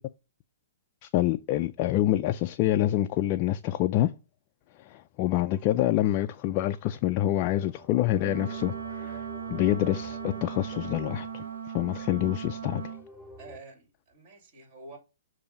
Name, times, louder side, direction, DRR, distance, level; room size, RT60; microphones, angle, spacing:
voice 1, 1.0-4.1 4.8-9.2 9.5-11.4 11.7-12.8, left 14 dB, 35° left, 0.4 m, -26 dB
sound 1, 5.2-6.9 7.7-13.6, equal, ahead, 1.0 m, -50 dB
Wind instrument woodwind instrument, 8.2-13.0, right 8 dB, 90° right, 0.9 m, -38 dB
voice 2, 13.4-15.0, right 3 dB, 40° right, 2.8 m, -48 dB
6.9 x 2.7 x 5.1 m
hypercardioid pair, 135°, 0 cm